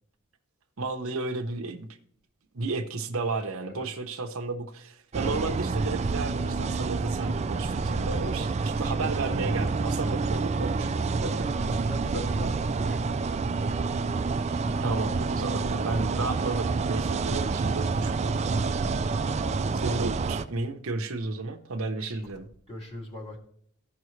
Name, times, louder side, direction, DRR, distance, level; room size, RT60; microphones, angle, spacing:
voice 1, 0.8-1.9 2.5-11.3 11.7-11.8 12.8-12.9 14.8-18.5 19.8-22.5, right 3 dB, 65° right, 5 dB, 0.8 m, -33 dB
sound 1, 5.1-20.4, right 4 dB, 30° right, 0.3 m, -28 dB
voice 2, 11.2-13.3 15.9-16.0 17.3-17.5 19.4-19.9 21.9-22.2 22.7-23.4, left 2 dB, 25° left, -2 dB, 2.3 m, -40 dB
15.0 x 5.7 x 3.2 m, 0.64 s
head